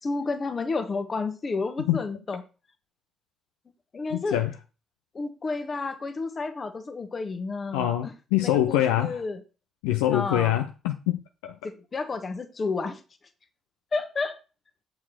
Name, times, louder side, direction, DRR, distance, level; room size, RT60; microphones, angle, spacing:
voice 1, 0.0-2.4 3.9-4.4 5.1-8.1 8.4-9.4 10.1-10.5 11.6-13.0 13.9-14.4, left 3 dB, 35° left, 1.4 m, -31 dB
voice 2, 4.1-4.5 7.7-9.2 9.8-11.6, left 12 dB, 70° left, 0.5 m, -25 dB
7.8 x 5.6 x 4.4 m
figure-of-eight pair, 45°, 0 cm